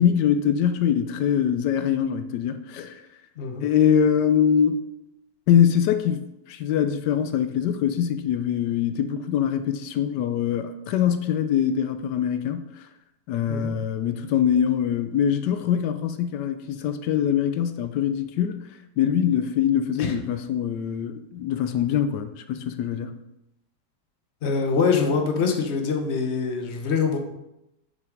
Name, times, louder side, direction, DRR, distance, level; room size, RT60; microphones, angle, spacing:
voice 1, 0.0-3.0 3.6-4.8 5.5-12.7 13.3-18.7 19.0-23.1, left 9 dB, 85° left, 1.2 m, -23 dB
voice 2, 3.4-3.7 13.5-13.7 20.0-20.1 24.4-27.2, left 5 dB, 45° left, 1.2 m, -24 dB
6.5 x 5.9 x 5.1 m
omnidirectional pair, 1.8 m